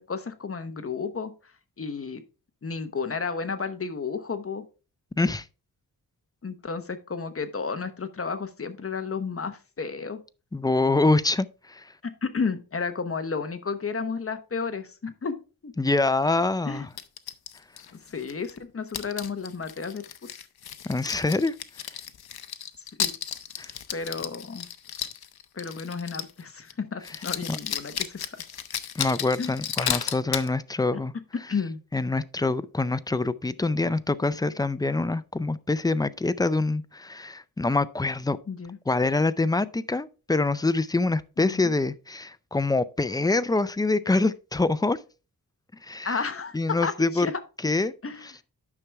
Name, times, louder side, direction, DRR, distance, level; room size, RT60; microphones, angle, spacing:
voice 1, 0.0-1.3 1.8-2.2 2.6-4.6 6.4-10.2 12.2-15.3 15.6-15.7 16.7-16.9 18.1-20.1 23.0-23.1 23.9-24.7 25.5-28.4 29.4-29.5 31.5-31.8 38.5-38.8 41.4-41.7 46.0-47.4 48.0-48.2, left 5 dB, 40° left, 1.0 m, -32 dB
voice 2, 5.2-5.5 10.5-11.9 15.8-16.9 20.8-21.5 23.6-23.7 27.5-27.6 28.9-31.1 31.9-38.4 38.9-45.0 45.8-46.2 46.5-47.3 47.6-47.9 48.2-48.3, left 3 dB, 10° left, 0.4 m, -25 dB
sound 1, 17.0-18.6 18.9-26.4 26.7-26.8 27.0-30.5, left 9 dB, 80° left, 0.7 m, -34 dB
9.8 x 6.0 x 3.4 m
wide cardioid pair, 105°, 37 cm